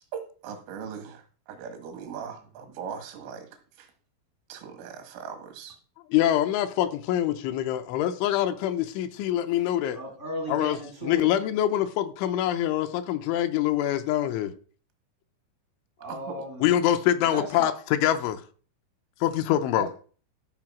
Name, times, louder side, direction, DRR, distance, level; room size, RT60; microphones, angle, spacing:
voice 1, 0.1-3.5 3.8-3.9 4.5-5.8 16.1-16.4, right 7 dB, 85° right, 4.2 m, -39 dB
voice 2, 6.1-10.0 10.5-14.5 16.6-18.4 19.2-19.9, left 12 dB, 80° left, 3.0 m, -25 dB
voice 3, 9.9-11.3 16.0-16.7 17.3-17.7 19.7-19.9, right 1 dB, 50° right, 0.8 m, -35 dB
13.5 x 4.9 x 6.1 m
omnidirectional pair, 5.7 m